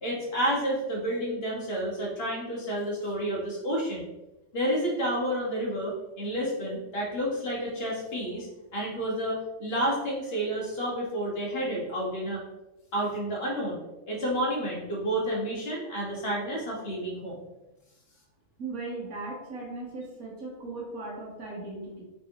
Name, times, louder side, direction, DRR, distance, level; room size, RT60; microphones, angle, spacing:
voice 1, 0.0-4.0 4.5-8.5 8.7-12.4 12.9-13.8 14.1-17.4, right 1 dB, 45° left, -4 dB, 1.4 m, -30 dB
voice 2, 18.6-22.0, right 3 dB, 75° right, -2 dB, 1.6 m, -38 dB
4.0 x 3.4 x 2.9 m, 0.98 s
omnidirectional pair, 1.5 m